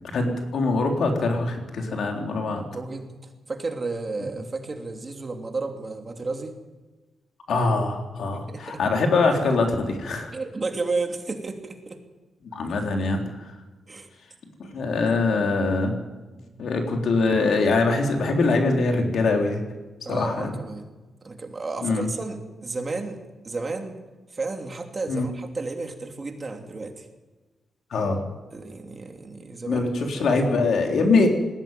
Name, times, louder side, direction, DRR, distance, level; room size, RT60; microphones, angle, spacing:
voice 1, 0.1-2.6 7.5-10.3 12.5-13.2 14.6-15.9 16.6-19.6 20.1-20.5 21.8-22.1 25.1-25.3 27.9-28.2 29.7-31.3, left 3 dB, 70° left, 2 dB, 3.8 m, -23 dB
voice 2, 2.6-6.6 8.3-8.8 10.3-12.0 13.9-14.1 16.3-16.6 20.0-20.9 21.2-24.0 24.3-27.1 28.5-30.4, right 3 dB, 30° right, 3 dB, 2.9 m, -33 dB
20.0 x 16.5 x 9.2 m, 1.2 s
cardioid pair, 120°, 0 cm